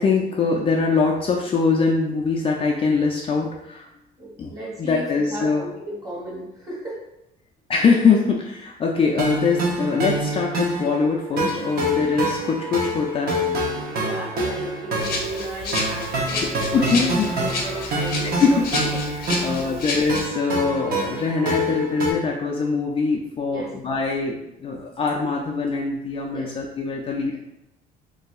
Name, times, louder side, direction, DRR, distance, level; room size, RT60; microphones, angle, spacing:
voice 1, 0.0-3.9 4.4-4.5 4.8-5.6 7.7-13.4 16.7-17.5 17.9-18.0 18.2-18.6 19.4-27.4, left 4 dB, 35° left, -1 dB, 0.3 m, -22 dB
voice 2, 4.2-7.0 13.9-17.0 17.4-18.6 18.9-19.0 19.3-19.4 23.5-23.7 26.3-26.5, right 1 dB, 20° right, -5 dB, 1.3 m, -34 dB
sound 1, 9.2-22.1, right 1 dB, 60° right, 0.8 m, -26 dB
Rattle (instrument), 15.0-20.3, left 3 dB, 65° left, 0.7 m, -30 dB
3.0 x 2.6 x 2.3 m, 0.86 s
cardioid pair, 110°, 17 cm